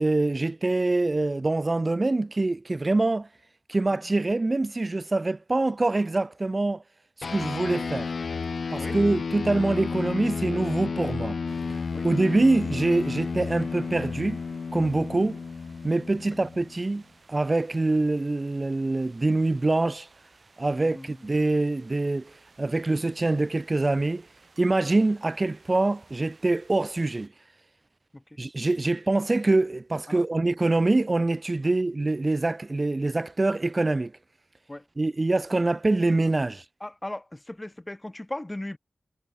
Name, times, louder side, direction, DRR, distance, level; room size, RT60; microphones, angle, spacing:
voice 1, 0.0-3.3 3.7-6.8 7.2-8.1 8.7-11.4 11.7-14.4 14.7-15.4 15.8-17.0 17.3-20.1 20.6-24.3 24.6-27.3 28.4-34.1 35.0-36.6, right 2 dB, 35° right, 0.4 m, -25 dB
sound 1, 7.2-17.0, left 5 dB, 70° left, 0.8 m, -32 dB
sound 2, 11.5-27.3, right 3 dB, 50° right, 7.5 m, -56 dB
voice 2, 20.7-21.2 28.1-28.2 30.1-30.2 34.7-34.8 36.8-38.8, left 1 dB, 20° left, 1.2 m, -37 dB
wide cardioid pair, 65°, 0 cm